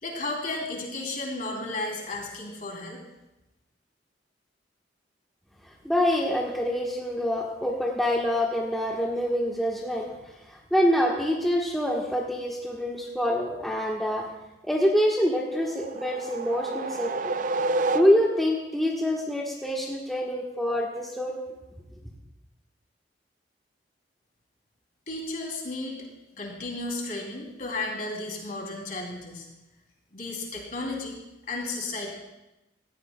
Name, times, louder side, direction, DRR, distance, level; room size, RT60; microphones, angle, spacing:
voice 1, 0.0-3.0 25.1-26.1 26.4-29.5 30.1-31.2 31.5-32.2, left 2 dB, 50° left, 0 dB, 3.0 m, -33 dB
voice 2, 5.8-10.1 10.5-14.3 14.6-17.3 17.9-21.4, equal, ahead, -3 dB, 1.3 m, -26 dB
sound 1, 15.3-18.6, right 2 dB, 45° right, 0.4 m, -30 dB
18.0 x 14.5 x 2.2 m, 0.97 s
head